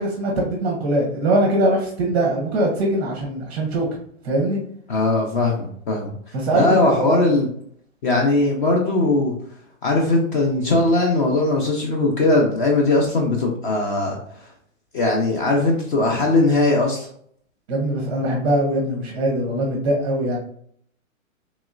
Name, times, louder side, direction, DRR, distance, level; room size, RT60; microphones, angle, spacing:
voice 1, 0.0-3.9 4.2-4.6 6.3-7.2 17.7-20.4, right 1 dB, 25° right, 0 dB, 0.5 m, -22 dB
voice 2, 4.9-6.2 6.5-7.5 8.0-9.3 9.8-14.2 14.9-17.1, left 2 dB, 40° left, 0 dB, 0.6 m, -19 dB
3.0 x 2.8 x 2.4 m, 0.63 s
hypercardioid pair, 140°, 41 cm